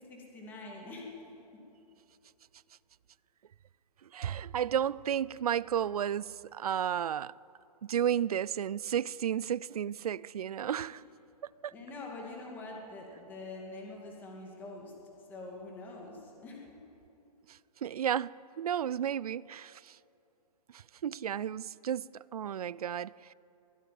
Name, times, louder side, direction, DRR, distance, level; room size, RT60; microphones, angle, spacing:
voice 1, 0.1-1.1 10.9-11.1 11.7-14.9 15.3-16.6, left 2 dB, 10° left, 2.3 m, -45 dB
voice 2, 4.1-7.3 7.8-11.0 11.6-11.7 17.8-19.8 21.0-23.1, right 9 dB, 65° right, 0.5 m, -32 dB
23.0 x 15.0 x 9.3 m
hypercardioid pair, 175°, 21 cm